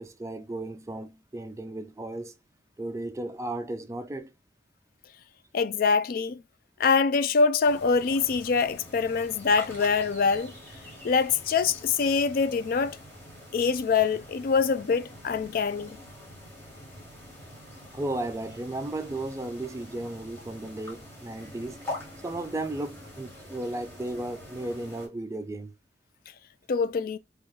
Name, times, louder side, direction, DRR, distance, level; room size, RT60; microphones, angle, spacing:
voice 1, 0.0-2.3 2.8-4.3 17.9-21.8 22.2-25.7, right 2 dB, 15° right, 0.4 m, -35 dB
voice 2, 5.5-6.4 6.8-10.5 11.0-13.0 13.5-16.0 26.7-27.2, left 5 dB, 55° left, 0.3 m, -24 dB
sound 1, 7.6-25.1, left 1 dB, 15° left, 1.5 m, -45 dB
3.0 x 2.9 x 3.7 m
head